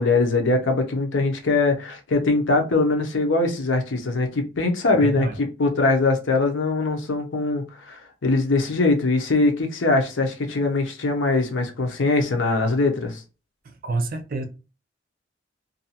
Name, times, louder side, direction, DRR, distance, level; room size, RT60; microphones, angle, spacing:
voice 1, 0.0-5.3 5.6-13.2, left 3 dB, 75° left, 0.7 m, -22 dB
voice 2, 4.9-5.4 13.6-14.4, right 3 dB, 45° right, 0.5 m, -28 dB
2.6 x 2.3 x 2.7 m
head